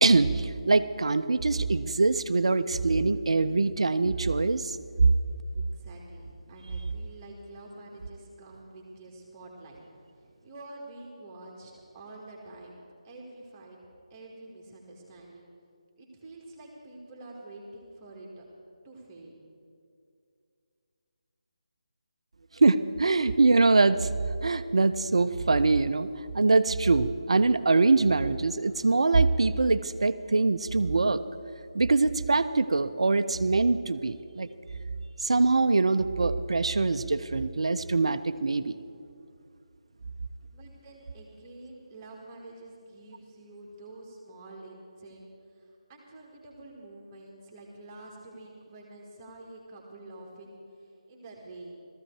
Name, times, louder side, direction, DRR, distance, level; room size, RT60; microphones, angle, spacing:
voice 1, 0.0-4.8 22.5-24.1 24.4-26.1 26.3-31.2 31.7-34.5 35.2-38.8, right 3 dB, 60° right, 12 dB, 0.5 m, -23 dB
voice 2, 5.5-9.8 10.2-12.8 13.0-13.8 14.1-15.5 16.0-18.4 18.8-19.4 40.5-51.8, right 2 dB, 20° right, -2 dB, 1.7 m, -47 dB
17.0 x 14.0 x 4.6 m, 2.4 s
figure-of-eight pair, 155°, 3 cm